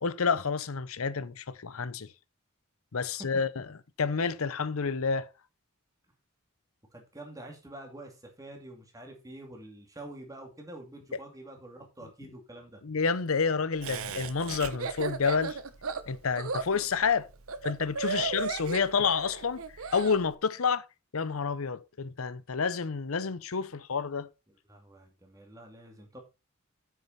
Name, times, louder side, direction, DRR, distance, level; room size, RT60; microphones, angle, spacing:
voice 1, 0.0-2.1 2.9-3.6 4.0-5.3 11.1-11.2 12.8-15.6 16.1-17.3 17.6-19.6 19.9-20.8 21.1-24.3, left 5 dB, 80° left, 0.8 m, -29 dB
voice 2, 3.0-3.4 6.9-12.8 18.1-18.3 24.7-26.2, right 1 dB, 15° right, 2.5 m, -47 dB
Laughter, 13.8-20.2, right 4 dB, 85° right, 1.0 m, -35 dB
8.6 x 6.7 x 4.1 m
head